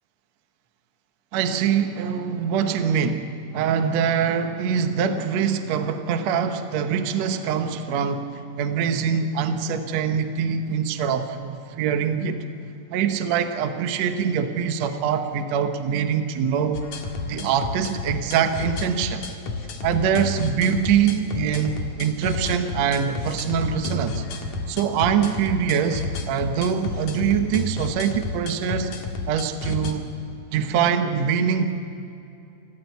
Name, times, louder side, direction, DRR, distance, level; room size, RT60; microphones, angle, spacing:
voice 1, 1.3-8.3 8.6-12.4 12.9-16.8 17.3-19.2 19.8-24.2 24.7-28.9 29.3-30.1 30.5-31.7, right 7 dB, 70° right, 7 dB, 1.6 m, -24 dB
sound 1, 16.7-29.9, left 3 dB, 55° left, 2.8 m, -31 dB
28.5 x 15.0 x 8.3 m, 2.7 s
omnidirectional pair, 4.6 m